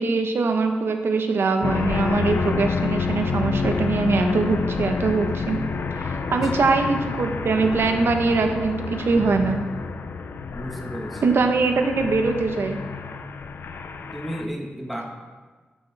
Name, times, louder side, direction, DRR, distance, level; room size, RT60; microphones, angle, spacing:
voice 1, 0.0-5.6 6.0-9.6 11.2-12.8, right 4 dB, 70° right, 5 dB, 1.0 m, -22 dB
sound 1, 1.6-14.4, left 5 dB, 70° left, 0.7 m, -28 dB
voice 2, 10.5-11.2 14.1-15.1, equal, ahead, 1 dB, 1.4 m, -33 dB
12.0 x 7.3 x 3.4 m, 1.4 s
cardioid pair, 70°, 4 cm